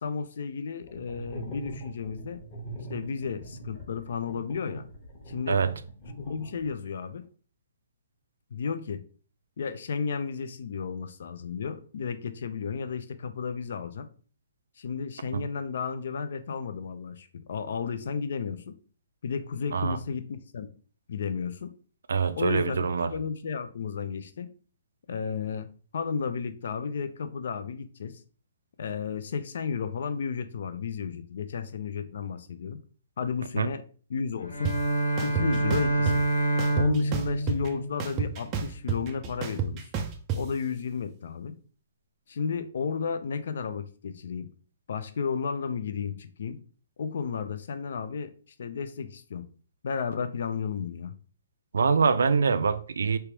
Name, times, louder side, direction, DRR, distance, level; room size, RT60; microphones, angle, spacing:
voice 1, 0.0-2.4 2.9-4.9 5.3-5.6 6.2-7.3 8.5-9.0 9.6-14.1 14.8-18.8 19.2-20.7 21.1-21.7 22.4-24.5 25.1-28.2 28.8-32.8 33.2-33.8 34.1-34.7 35.2-36.3 36.8-39.9 40.4-41.6 42.3-44.5 44.9-46.6 47.0-48.3 48.6-49.5 49.8-51.1, left 6 dB, 50° left, 0.5 m, -33 dB
sound 1, 0.8-6.9, right 1 dB, 20° left, 1.1 m, -42 dB
voice 2, 22.1-23.1 33.6-33.7 51.7-53.2, right 5 dB, 80° right, 0.5 m, -24 dB
Bowed string instrument, 34.4-38.5, right 1 dB, 85° left, 2.1 m, -27 dB
sound 2, 34.6-34.7 35.2-36.2 36.6-37.7 38.0-40.4, right 7 dB, 15° right, 0.4 m, -30 dB
3.4 x 2.9 x 4.5 m
hypercardioid pair, 180°, 0 cm